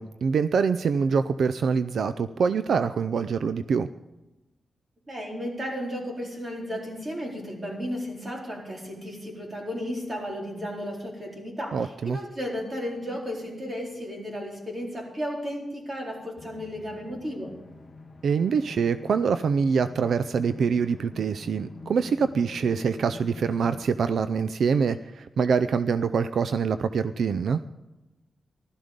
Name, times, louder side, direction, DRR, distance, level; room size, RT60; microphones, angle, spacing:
voice 1, 0.0-3.9 11.7-12.2 18.2-27.6, right 6 dB, 80° right, 12 dB, 0.4 m, -25 dB
voice 2, 5.1-17.5, equal, 30° right, -2 dB, 4.2 m, -34 dB
sound 1, 16.4-23.9, left 3 dB, 35° left, 0.9 m, -46 dB
15.5 x 12.5 x 5.2 m, 1.0 s
wide cardioid pair, 130°, 0 cm